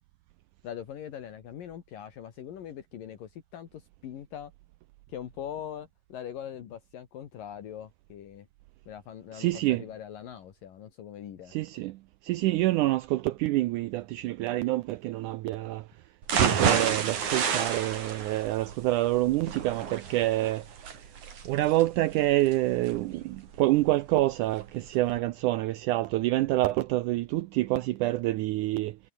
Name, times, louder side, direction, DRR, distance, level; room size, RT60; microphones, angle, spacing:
voice 1, 0.6-4.5 5.1-8.5 8.9-11.5, left 9 dB, 70° left, 3.6 m, -42 dB
voice 2, 9.3-9.8 11.5-15.9 16.4-21.1 21.5-29.0, right 17 dB, 80° right, 1.8 m, -27 dB
sound 1, 16.2-24.2 24.6-24.7 25.1-25.2, right 7 dB, 55° right, 4.4 m, -30 dB
omnidirectional pair, 4.2 m